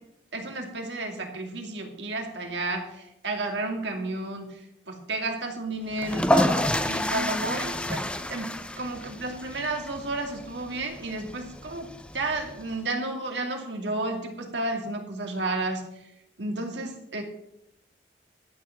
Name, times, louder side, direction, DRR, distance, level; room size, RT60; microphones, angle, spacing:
voice 1, 0.3-4.6 4.9-8.0 8.3-15.8 16.4-17.2, right 2 dB, 85° right, 2 dB, 2.6 m, -32 dB
sound 1, 5.9-12.7, left 1 dB, 5° left, 0.6 m, -29 dB
12.0 x 6.9 x 7.3 m, 0.82 s
head